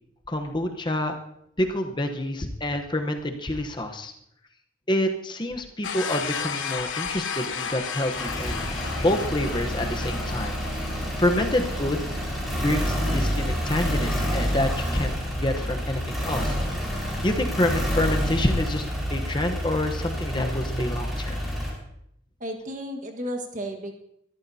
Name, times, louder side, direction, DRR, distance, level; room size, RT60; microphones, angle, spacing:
voice 1, 0.3-1.2 1.6-4.1 4.9-8.6 9.0-10.6 11.2-12.1 12.5-16.6 17.2-21.4, left 1 dB, 25° left, 5 dB, 0.9 m, -27 dB
sound 1, 5.8-11.7, left 6 dB, 75° left, 1.1 m, -33 dB
sound 2, 7.4-21.7, equal, ahead, 4.7 m, -28 dB
voice 2, 22.4-23.9, equal, 40° right, 2 dB, 1.6 m, -33 dB
22.0 x 13.5 x 2.8 m, 0.75 s
head